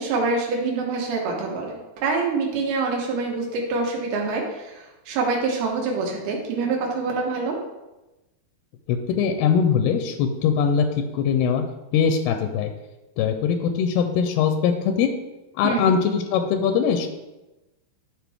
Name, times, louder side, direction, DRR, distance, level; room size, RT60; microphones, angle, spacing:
voice 1, 0.0-7.6 15.6-15.9, right 4 dB, 75° right, 0 dB, 3.3 m, -26 dB
voice 2, 8.9-10.9 11.1-11.6 11.9-12.7 13.2-15.1 15.6-17.1, left 7 dB, 90° left, 6 dB, 2.6 m, -21 dB
12.0 x 4.4 x 3.6 m, 1.0 s
omnidirectional pair, 4.5 m